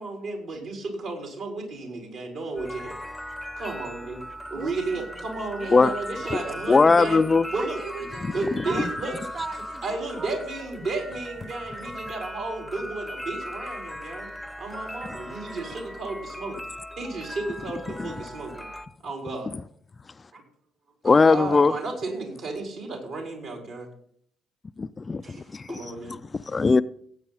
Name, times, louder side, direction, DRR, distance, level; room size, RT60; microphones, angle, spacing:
voice 1, 0.0-3.0 3.6-4.2 4.5-7.2 7.5-7.8 8.3-9.1 9.8-14.3 14.6-16.6 17.0-18.7 19.0-19.5 20.3-20.4 21.0-23.9 25.7-26.1, right 3 dB, 60° right, 4.2 m, -33 dB
sound 1, 2.6-18.9, equal, 5° left, 0.9 m, -38 dB
voice 2, 4.5-5.2 5.6-5.9 6.2-6.6 7.6-10.9 21.4-21.9 25.2-25.9, right 5 dB, 40° right, 0.8 m, -41 dB
voice 3, 6.7-7.5 18.0-18.1 21.0-21.7 24.8-25.8 26.1-26.8, left 4 dB, 30° left, 0.4 m, -19 dB
17.5 x 8.8 x 4.1 m
figure-of-eight pair, 50°, 0 cm